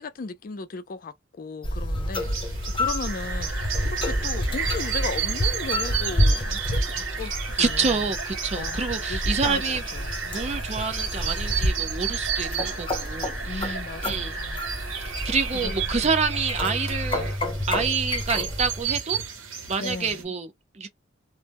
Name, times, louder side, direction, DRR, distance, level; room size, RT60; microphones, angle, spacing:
voice 1, 0.0-8.0 8.5-10.2 13.4-14.6 15.6-15.7 19.8-20.3, left 4 dB, 45° left, 0.4 m, -36 dB
sound 1, 1.6-18.8, left 1 dB, 25° left, 0.8 m, -29 dB
sound 2, 2.2-20.2, right 9 dB, 80° right, 0.8 m, -34 dB
sound 3, 3.0-17.4, right 4 dB, 60° right, 1.0 m, -36 dB
voice 2, 7.6-9.8 10.2-14.4 15.2-17.3 17.7-19.2 19.7-20.9, right 5 dB, 35° right, 0.5 m, -28 dB
2.0 x 2.0 x 3.4 m
head